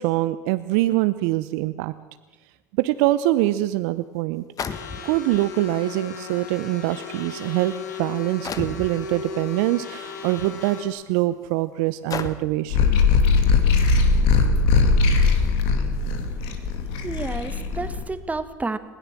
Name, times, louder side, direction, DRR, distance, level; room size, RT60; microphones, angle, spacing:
voice 1, 0.0-1.9 2.8-4.4 5.0-7.7 8.0-13.0, right 17 dB, 70° right, 13 dB, 0.7 m, -24 dB
sound 1, 3.5-3.6 4.6-5.4 6.3-6.4 7.2-7.4 8.4-8.9 10.2-10.4 11.0-11.1 12.1-12.6, left 6 dB, 40° left, 1.6 m, -32 dB
sound 2, 4.7-10.9, left 6 dB, 85° left, 2.5 m, -36 dB
sound 3, 12.7-18.0, left 4 dB, 70° left, 2.5 m, -19 dB
voice 2, 17.0-18.8, right 3 dB, 15° right, 12 dB, 1.7 m, -30 dB
21.0 x 17.0 x 7.4 m, 1.2 s
hypercardioid pair, 75°, 9 cm